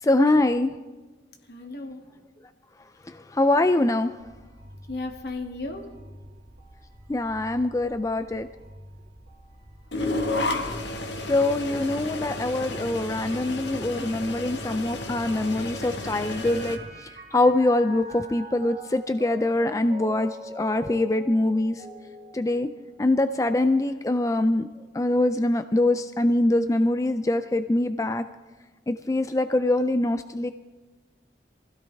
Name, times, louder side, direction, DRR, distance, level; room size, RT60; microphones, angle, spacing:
voice 1, 0.0-0.7 3.1-4.1 7.1-8.5 11.3-21.8 22.3-22.7 23.0-24.7 24.9-28.2 28.9-30.5, left 2 dB, 20° left, 10 dB, 0.4 m, -24 dB
voice 2, 1.5-2.1 4.9-6.0, left 2 dB, 70° left, 3 dB, 2.2 m, -35 dB
sound 1, 4.2-11.4, equal, 60° right, 2.9 m, -49 dB
sound 2, 9.9-16.8, left 2 dB, 85° left, 1.6 m, -32 dB
Mallet percussion, 15.5-23.2, equal, 40° right, 3.8 m, -43 dB
24.0 x 16.0 x 3.5 m, 1.3 s
head